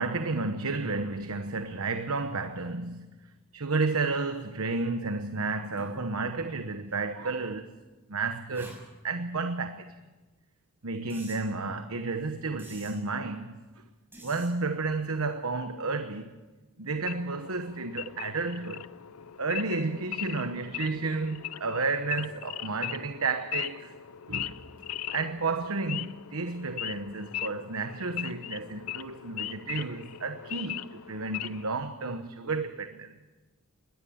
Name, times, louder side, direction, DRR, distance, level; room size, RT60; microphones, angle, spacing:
voice 1, 0.0-3.1 3.5-7.7 8.1-9.9 10.8-13.8 14.2-16.3 16.8-18.9 19.4-23.9 24.3-24.6 25.1-33.1, right 3 dB, 75° right, 1.1 m, -32 dB
sound 1, 5.8-6.1 6.9-7.0 8.5-8.8 11.1-11.4 12.6-12.9 14.1-14.5, right 1 dB, 10° right, 6.5 m, -47 dB
Wild animals / Idling, 17.0-31.7, left 12 dB, 85° left, 0.6 m, -39 dB
21.0 x 19.0 x 7.2 m
head